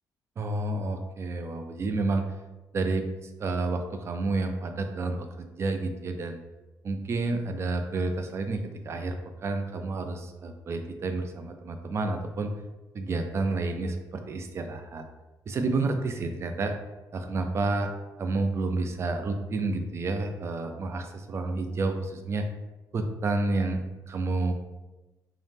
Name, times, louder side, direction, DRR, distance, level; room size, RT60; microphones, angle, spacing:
voice 1, 0.4-2.3 2.7-3.1 3.4-6.4 6.8-12.5 12.9-15.0 15.5-16.7 17.1-17.9 18.2-22.5 22.9-24.5, right 3 dB, 40° right, 6 dB, 0.3 m, -30 dB
2.7 x 2.0 x 3.3 m, 1.1 s
cardioid pair, 110°, 7 cm